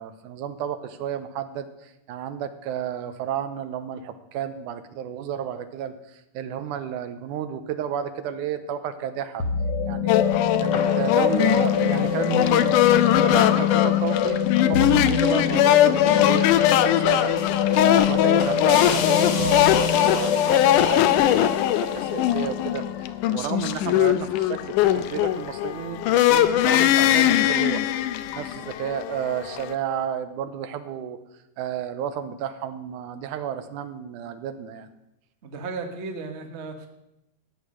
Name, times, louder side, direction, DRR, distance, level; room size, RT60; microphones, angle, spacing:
voice 1, 0.0-9.5 9.9-10.3 10.6-27.8 28.3-31.2 31.6-34.9, right 9 dB, 85° right, 10 dB, 2.3 m, -32 dB
sound 1, 9.4-23.8, left 8 dB, 60° left, 1.7 m, -24 dB
sound 2, 10.1-29.7, left 12 dB, 90° left, 2.2 m, -21 dB
voice 2, 35.4-36.9, right 4 dB, 65° right, 4 dB, 0.6 m, -34 dB
13.5 x 8.7 x 6.3 m, 0.88 s
omnidirectional pair, 3.5 m